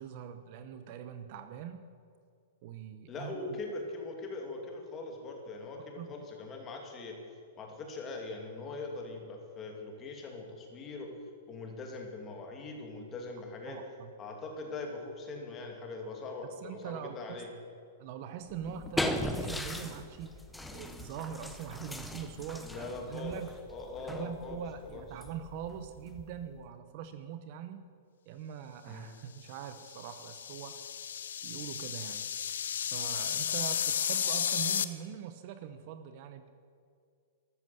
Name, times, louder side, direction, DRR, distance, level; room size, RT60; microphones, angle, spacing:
voice 1, 0.0-1.8 2.6-3.6 6.0-6.2 13.6-14.1 16.6-17.4 18.0-20.3 20.7-23.5 24.0-27.8 28.3-30.8 31.4-32.3 32.9-36.5, right 9 dB, 40° right, 10 dB, 0.9 m, -42 dB
voice 2, 3.1-7.1 7.6-11.1 11.5-13.8 14.2-17.5 22.6-23.4 23.7-25.0 28.9-29.1 33.5-33.6, left 3 dB, 20° left, 2 dB, 2.6 m, -41 dB
sound 1, 18.5-26.6, left 1 dB, 5° left, 0.8 m, -39 dB
sound 2, 29.7-34.8, left 8 dB, 90° left, 0.9 m, -33 dB
14.0 x 13.0 x 7.9 m, 2.3 s
supercardioid pair, 165°, 0 cm